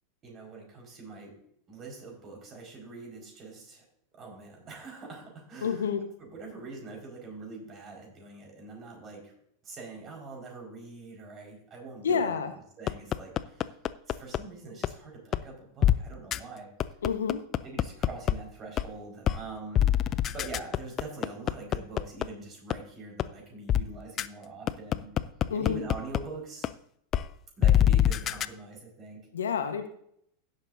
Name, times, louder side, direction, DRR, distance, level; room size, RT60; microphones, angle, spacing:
voice 1, 0.2-1.3 1.7-3.8 4.1-5.9 6.2-9.3 9.6-12.4 12.8-13.8 14.1-16.7 17.6-19.9 20.3-25.1 25.5-26.7 27.6-29.3, right 3 dB, 35° right, 0 dB, 4.9 m, -44 dB
voice 2, 5.6-6.0 12.0-12.5 17.0-17.4 25.5-25.8 29.3-29.9, left 6 dB, 75° left, 7 dB, 1.2 m, -29 dB
sound 1, 12.9-14.4 14.8-14.9 15.3-15.4 15.8-15.9 16.3-16.4 16.8-18.3 18.8-18.9 19.3-19.4 19.8-22.2 22.7-22.8 23.2-23.3 23.7-23.8 24.2-24.3 24.7-26.2 26.6-26.7 27.1-27.2 27.6-28.5, left 11 dB, 35° left, 0.4 m, -24 dB
16.5 x 8.0 x 2.7 m, 0.69 s
figure-of-eight pair, 90°, 0 cm